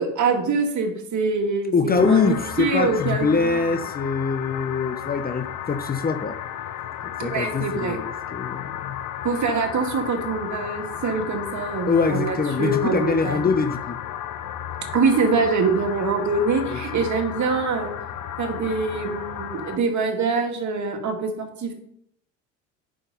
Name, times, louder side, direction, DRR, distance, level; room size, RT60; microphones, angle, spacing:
voice 1, 0.0-3.8 7.2-8.0 9.2-13.5 14.9-17.9 18.4-21.7, right 4 dB, 45° right, 3 dB, 2.3 m, -24 dB
voice 2, 1.7-6.4 7.2-9.0 11.9-14.0 16.7-17.0, left 5 dB, 25° left, 8 dB, 0.8 m, -23 dB
sound 1, 2.0-19.8, left 10 dB, 50° left, 0.9 m, -34 dB
8.7 x 6.4 x 5.4 m, 0.73 s
hypercardioid pair, 75°, 40 cm